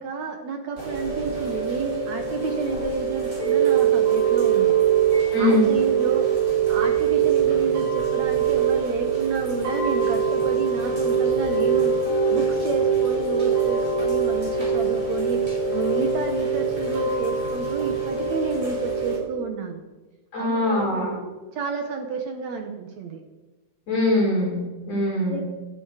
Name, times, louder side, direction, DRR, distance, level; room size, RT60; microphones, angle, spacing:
voice 1, 0.0-4.8 5.4-6.3 6.7-11.9 12.3-19.8 20.4-23.2 25.3-25.4, right 5 dB, 65° right, 4 dB, 1.8 m, -30 dB
Chime / Rain, 0.8-19.2, right 7 dB, 20° right, 4.9 m, -23 dB
voice 2, 5.3-5.6 20.3-21.1 23.9-25.4, left 2 dB, 40° left, -6 dB, 6.0 m, -22 dB
17.0 x 11.0 x 5.0 m, 1.2 s
omnidirectional pair, 4.6 m